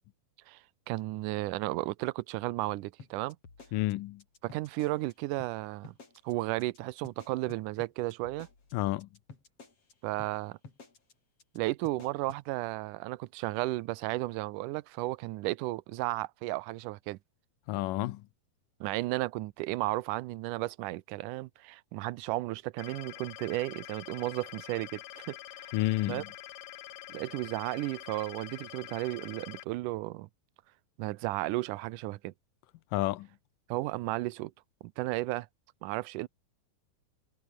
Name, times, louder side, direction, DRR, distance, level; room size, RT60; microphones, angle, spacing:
voice 1, 0.9-3.4 4.4-5.9 6.2-8.5 10.0-10.6 11.6-17.2 18.8-25.7 26.1-26.2 27.1-30.3 31.0-32.3 33.7-34.5 34.8-35.5 35.8-36.3, right 19 dB, 85° right, 2.2 m, -34 dB
sound 1, 3.0-5.1 5.4-5.5 5.8-6.3 6.6-6.8 7.0-9.9 10.2-10.3 10.6-11.1 11.4-11.6 11.8-12.4, left 4 dB, 45° left, 5.2 m, -51 dB
voice 2, 3.7-4.2 8.7-9.1 17.7-18.2 25.7-26.3 32.9-33.3, left 17 dB, 90° left, 2.4 m, -30 dB
sound 2, 22.8-29.6, left 14 dB, 70° left, 1.8 m, -46 dB
omnidirectional pair, 3.8 m